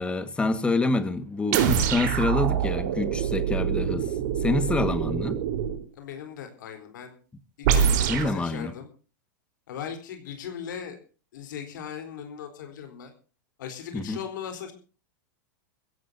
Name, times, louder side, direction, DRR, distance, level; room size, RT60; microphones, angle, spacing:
voice 1, 0.0-4.1 4.4-5.4 8.1-8.7 13.9-14.2, left 3 dB, 10° left, 1.6 m, -27 dB
sound 1, 1.5-5.8 7.6-8.4, right 8 dB, 65° right, 4.0 m, -25 dB
voice 2, 5.9-7.2 7.6-8.9 9.7-11.0 11.3-13.1 13.6-14.7, left 8 dB, 80° left, 4.0 m, -38 dB
22.0 x 15.5 x 2.7 m
supercardioid pair, 145°, 10 cm